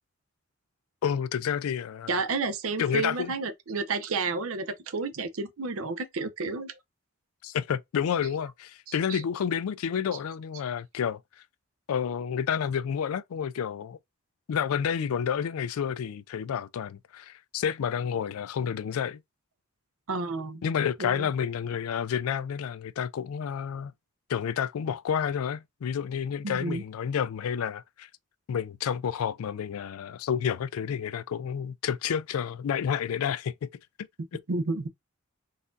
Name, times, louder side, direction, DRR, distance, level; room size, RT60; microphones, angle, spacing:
voice 1, 1.0-2.2 2.8-3.3 7.4-11.2 11.9-14.0 14.5-19.2 20.6-23.9 24.3-28.1 28.5-33.5, left 8 dB, 85° left, 0.3 m, -30 dB
voice 2, 2.1-6.7 8.9-9.2 20.1-20.6 21.0-21.3 26.4-26.8 34.5-34.9, right 3 dB, 80° right, 0.6 m, -31 dB
4.0 x 2.4 x 2.5 m
head